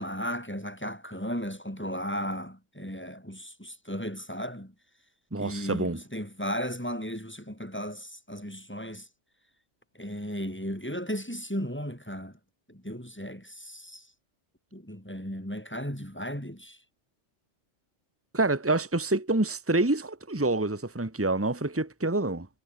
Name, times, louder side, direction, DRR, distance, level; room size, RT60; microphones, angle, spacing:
voice 1, 0.0-4.7 5.4-9.1 10.0-12.3 12.7-14.1 14.7-16.8, equal, 10° left, 5.3 m, -35 dB
voice 2, 5.3-6.0 18.3-22.5, right 2 dB, 10° right, 1.7 m, -27 dB
omnidirectional pair, 1.3 m